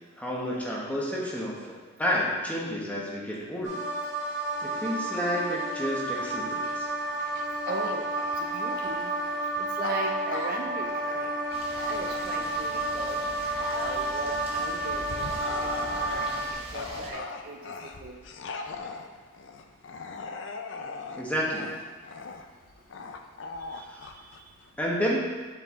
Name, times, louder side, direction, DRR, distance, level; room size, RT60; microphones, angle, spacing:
voice 1, 0.2-1.7 2.0-3.8 4.6-6.9 21.2-21.7 23.8-24.0 24.8-25.2, equal, 5° left, -4 dB, 1.0 m, -30 dB
sound 1, 3.6-16.5, right 2 dB, 60° right, 2.0 m, -31 dB
Bark / Growling, 6.1-12.6 13.1-25.0, left 4 dB, 60° left, 0.5 m, -40 dB
voice 2, 7.7-8.1 8.4-9.1 9.6-11.3 11.9-13.2 13.8-16.3 16.7-18.2 23.8-23.9, right 3 dB, 45° right, 1 dB, 0.5 m, -38 dB
sound 2, 11.5-17.1, right 1 dB, 30° right, 1.1 m, -43 dB
7.5 x 4.6 x 3.6 m, 1.4 s
head